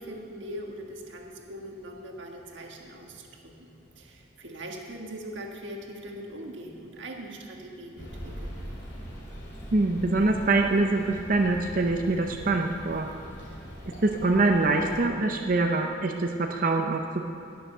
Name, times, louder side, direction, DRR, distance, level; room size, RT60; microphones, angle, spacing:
voice 1, 0.0-8.6, right 1 dB, 65° right, 1 dB, 1.5 m, -41 dB
sound 1, 8.0-15.1, equal, 60° left, 2.9 m, -42 dB
voice 2, 9.7-13.1 14.0-17.2, right 2 dB, 45° right, 3 dB, 0.6 m, -24 dB
16.5 x 6.9 x 6.7 m, 2.8 s
head